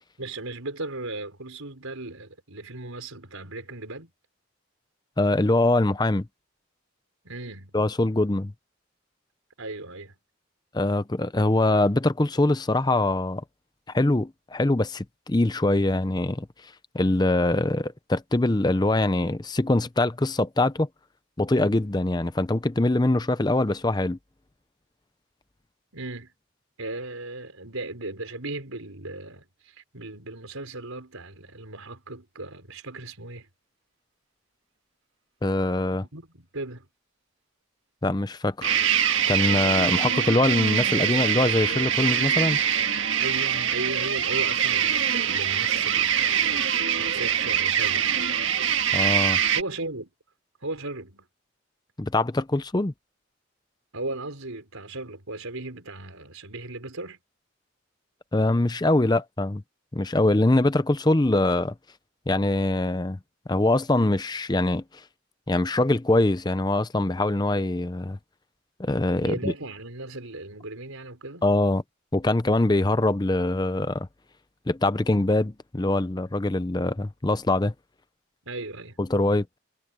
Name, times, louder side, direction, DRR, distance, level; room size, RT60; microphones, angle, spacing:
voice 1, 0.2-4.1 7.2-7.7 9.6-10.2 25.9-26.3 26.8-33.5 35.9-36.9 43.2-46.5 46.9-48.1 49.5-50.1 50.6-51.3 53.9-57.2 69.2-71.4 78.4-79.0, right 2 dB, 85° right, 5.3 m, -36 dB
voice 2, 5.2-6.3 7.7-8.5 10.7-13.4 13.9-20.9 21.4-24.2 35.4-36.1 38.0-38.8 39.3-42.6 48.9-49.4 52.0-52.9 58.3-59.6 59.9-61.7 62.3-63.2 63.5-64.8 65.5-68.2 68.8-69.5 71.4-71.8 72.1-74.1 74.7-77.7 79.0-79.5, left 2 dB, 20° left, 0.6 m, -23 dB
sound 1, 38.6-49.6, right 9 dB, 70° right, 1.6 m, -24 dB
head